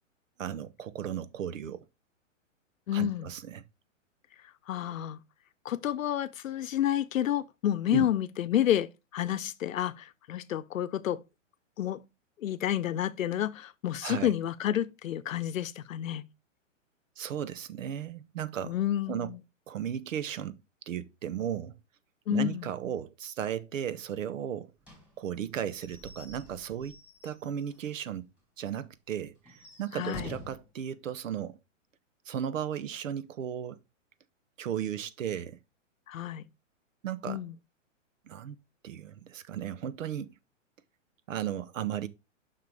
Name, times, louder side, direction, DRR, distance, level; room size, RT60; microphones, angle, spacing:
voice 1, 0.4-1.9 2.9-3.6 7.9-8.1 14.0-14.3 17.2-18.8 19.1-19.3 19.7-20.6 20.9-21.8 22.3-24.7 25.2-28.3 28.6-31.6 32.3-33.8 34.6-35.6 37.0-37.4 38.3-38.6 38.8-40.3 41.3-42.1, right 9 dB, 75° right, 0.9 m, -35 dB
voice 2, 2.9-3.3 4.7-5.2 5.6-11.2 11.8-12.0 12.4-16.3 18.6-19.4 22.3-22.7 29.9-30.3 36.1-36.4 37.3-37.5, left 11 dB, 85° left, 0.7 m, -30 dB
Slam / Squeak / Wood, 24.8-28.0 28.4-28.5 28.8-28.9 29.4-30.7, right 1 dB, 5° right, 3.0 m, -48 dB
6.7 x 5.8 x 3.4 m
hypercardioid pair, 150°, 39 cm